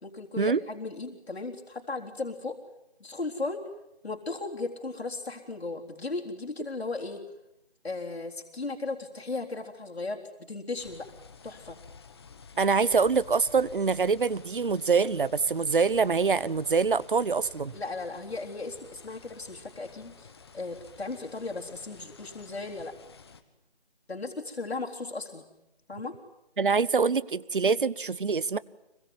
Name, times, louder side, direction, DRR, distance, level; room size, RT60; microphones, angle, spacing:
voice 1, 0.0-2.6 3.0-3.7 4.0-7.2 7.8-10.2 10.5-11.1 11.4-11.8 17.7-22.9 24.1-25.4 25.9-26.1, left 3 dB, 75° left, 3.9 m, -36 dB
sound 1, 10.8-23.4, left 5 dB, 25° left, 1.5 m, -52 dB
voice 2, 12.6-17.7 26.6-28.6, right 5 dB, 55° right, 1.0 m, -25 dB
25.5 x 23.5 x 9.4 m
figure-of-eight pair, 165°, 32 cm